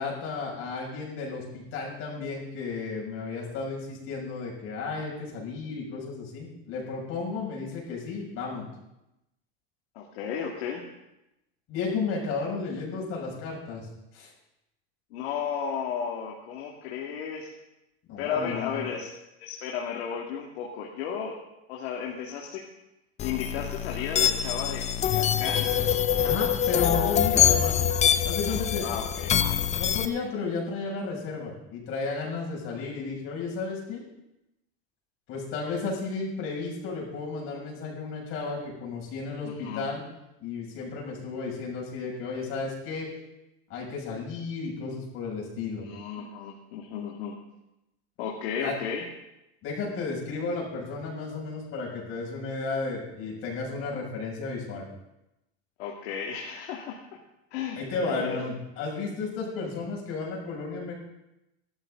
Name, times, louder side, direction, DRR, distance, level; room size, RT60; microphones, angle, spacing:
voice 1, 0.0-8.6 11.7-13.9 14.1-14.3 18.1-18.9 26.2-27.9 28.3-28.9 29.7-34.0 35.3-40.0 40.4-43.1 43.7-45.8 48.6-48.7 49.6-54.8 57.8-60.9, left 4 dB, 45° left, -3 dB, 6.9 m, -33 dB
voice 2, 9.9-10.8 15.1-17.5 18.2-19.1 19.4-21.4 21.7-22.6 23.2-25.7 26.7-27.2 28.8-29.3 39.4-39.9 45.8-47.4 48.2-49.0 55.8-57.0 57.5-58.4, left 7 dB, 85° left, -1 dB, 2.4 m, -34 dB
sound 1, 23.2-30.1, left 9 dB, 20° left, 0.6 m, -25 dB
16.5 x 13.0 x 3.9 m, 0.90 s
supercardioid pair, 150°, 31 cm